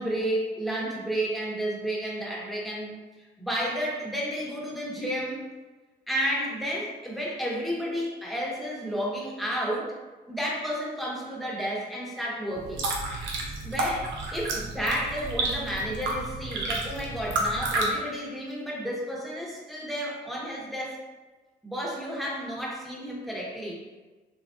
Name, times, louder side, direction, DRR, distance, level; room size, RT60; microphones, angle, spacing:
voice 1, 0.0-3.0 3.4-5.5 6.1-9.9 10.3-12.8 13.6-21.0 21.6-23.8, equal, ahead, -5 dB, 1.0 m, -31 dB
sound 1, 12.5-17.9, right 2 dB, 85° right, 0.6 m, -30 dB
3.1 x 2.5 x 2.4 m, 1.2 s
supercardioid pair, 60°, 19 cm